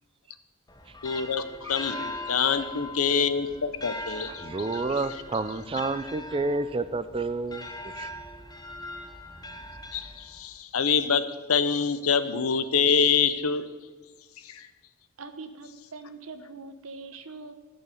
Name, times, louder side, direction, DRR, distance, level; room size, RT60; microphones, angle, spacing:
sound 1, 0.7-10.6, left 1 dB, 20° left, 1.1 m, -41 dB
voice 1, 1.0-4.8 9.9-13.7 14.4-14.7, left 6 dB, 85° left, 12 dB, 0.9 m, -26 dB
voice 2, 4.4-8.1, right 3 dB, 25° right, 13 dB, 0.5 m, -30 dB
voice 3, 15.2-17.5, right 3 dB, 70° right, 9 dB, 1.1 m, -42 dB
14.5 x 5.6 x 8.6 m, 1.3 s
head